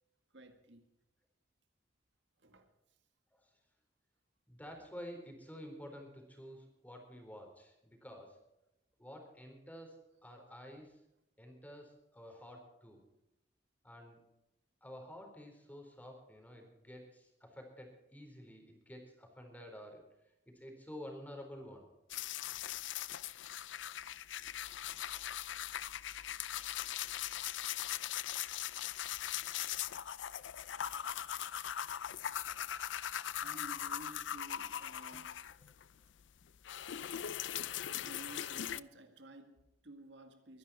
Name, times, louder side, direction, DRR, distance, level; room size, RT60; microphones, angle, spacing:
voice 1, 0.3-0.9 2.4-2.7 33.1-35.4 38.0-40.6, right 1 dB, 70° right, 1.9 m, -53 dB
voice 2, 4.5-8.4 9.0-11.0 11.4-13.0 13.8-14.2 14.8-20.0 20.5-21.9, equal, 10° left, 4.1 m, -50 dB
sound 1, 22.1-35.9 36.2-38.8, left 11 dB, 80° left, 0.5 m, -40 dB
23.5 x 11.0 x 4.3 m
head